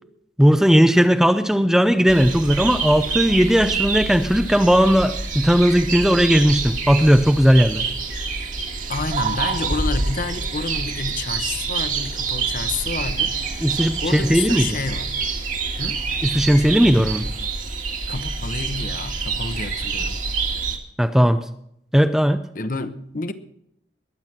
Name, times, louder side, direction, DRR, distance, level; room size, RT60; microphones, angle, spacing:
voice 1, 0.4-7.9 13.6-14.8 16.2-17.3 21.0-21.4 21.9-22.4, equal, 5° right, 0.5 m, -17 dB
sound 1, 2.1-20.8, right 4 dB, 45° right, 1.9 m, -27 dB
voice 2, 8.9-15.1 15.8-16.0 18.1-20.2 22.5-23.3, left 3 dB, 50° left, 1.0 m, -29 dB
21.0 x 8.2 x 6.0 m
head